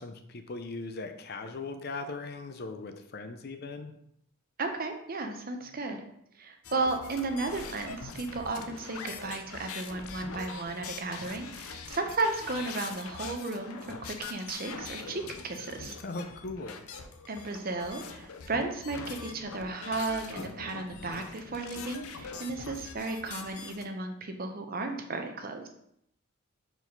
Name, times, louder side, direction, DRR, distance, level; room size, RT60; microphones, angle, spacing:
voice 1, 0.0-3.9 16.0-16.8, left 3 dB, 45° left, 8 dB, 0.6 m, -39 dB
voice 2, 4.6-6.0 6.4-16.0 17.3-25.7, right 3 dB, 45° right, 5 dB, 0.7 m, -34 dB
sound 1, 6.6-23.9, left 5 dB, 85° left, 0.6 m, -43 dB
4.8 x 4.0 x 5.2 m, 0.74 s
head